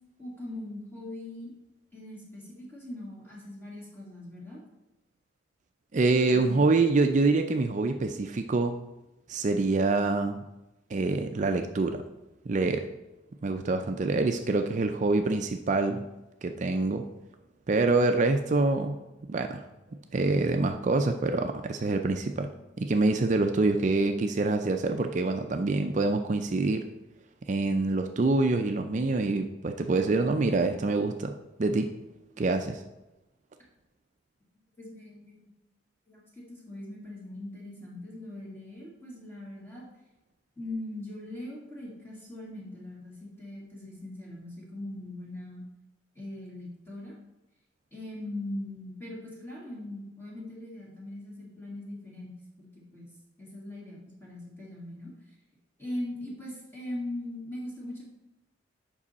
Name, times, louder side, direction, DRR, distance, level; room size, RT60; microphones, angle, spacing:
voice 1, 0.2-1.5 1.9-4.6 6.3-6.6 34.8-35.5 36.1-39.8 40.6-45.6 46.2-47.1 47.9-53.1 53.4-55.1 55.8-58.1, left 1 dB, 10° left, -5 dB, 1.9 m, -40 dB
voice 2, 5.9-8.8 9.3-10.4 10.9-12.0 12.5-12.9 13.4-16.0 16.4-17.0 17.7-19.0 19.3-19.6 20.1-22.5 22.8-26.8 27.5-31.3 31.6-31.9 32.4-32.8, right 3 dB, 40° right, 6 dB, 0.4 m, -26 dB
7.4 x 5.4 x 4.1 m, 0.96 s
head